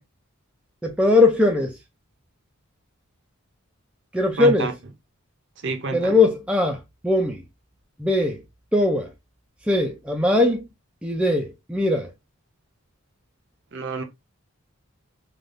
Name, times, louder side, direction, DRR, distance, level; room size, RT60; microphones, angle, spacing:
voice 1, 0.8-1.7 4.1-4.7 5.9-6.8 7.0-7.4 8.0-8.4 8.7-9.1 9.7-10.6 11.0-12.1, left 2 dB, 5° right, 0.3 m, -20 dB
voice 2, 4.4-4.7 5.6-6.2 13.7-14.0, right 3 dB, 55° right, 0.6 m, -28 dB
3.3 x 2.3 x 2.5 m
head